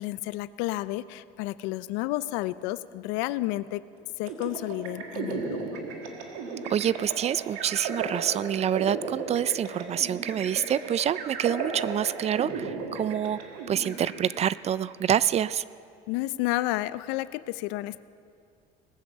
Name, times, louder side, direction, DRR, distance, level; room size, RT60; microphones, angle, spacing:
voice 1, 0.0-3.8 4.2-5.8 16.1-18.0, left 17 dB, 85° left, 17 dB, 0.5 m, -31 dB
sound 1, 4.3-14.7, right 4 dB, 90° right, 1.7 m, -35 dB
voice 2, 6.7-13.4 13.7-15.6, right 9 dB, 35° right, 19 dB, 0.4 m, -27 dB
19.5 x 7.1 x 7.6 m, 2.4 s
supercardioid pair, 95°, 18 cm